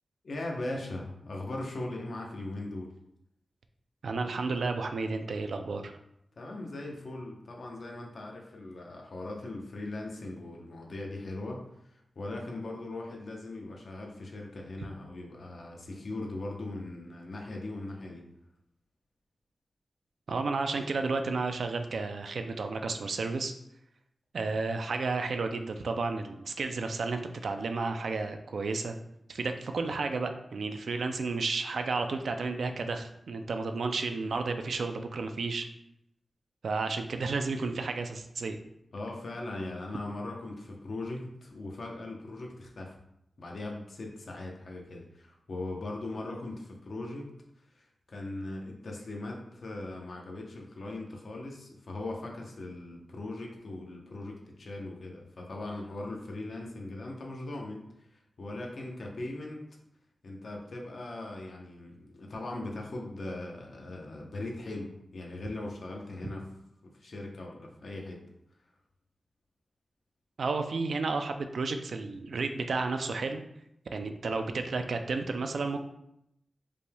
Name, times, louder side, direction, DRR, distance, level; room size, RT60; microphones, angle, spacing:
voice 1, 0.2-2.9 6.4-18.3 38.9-43.0 43.4-47.3 47.8-58.1 58.4-59.6 60.2-66.4 66.8-68.2, left 2 dB, 65° left, 0 dB, 0.8 m, -39 dB
voice 2, 4.0-5.9 20.3-23.5 24.3-29.0 29.3-35.7 36.6-38.6 70.4-73.4 73.9-75.8, right 3 dB, 85° right, 6 dB, 0.4 m, -32 dB
5.1 x 3.4 x 2.3 m, 0.79 s
wide cardioid pair, 125°, 0 cm